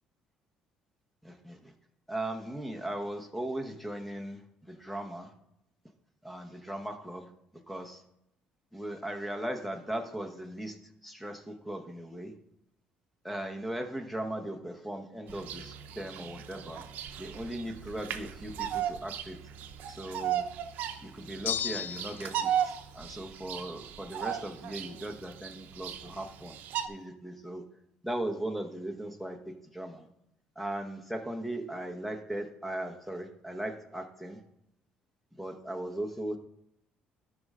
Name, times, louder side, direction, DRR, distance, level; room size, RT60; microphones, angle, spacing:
voice 1, 1.2-1.6 2.1-4.4 4.7-5.3 6.2-7.3 7.7-8.0 8.7-10.7 11.0-12.3 13.2-16.8 17.2-19.4 19.9-20.4 21.0-26.5 26.9-27.6 28.0-29.4 29.7-30.1 30.6-34.4 35.4-36.4, right 1 dB, 5° left, 4 dB, 1.0 m, -38 dB
Bird vocalization bird call bird song, 15.3-26.9, right 10 dB, 70° right, 0.7 m, -37 dB
sound 1, 21.4-22.4, left 8 dB, 65° left, 0.5 m, -34 dB
12.5 x 5.5 x 3.7 m, 0.82 s
cardioid pair, 110°, 3 cm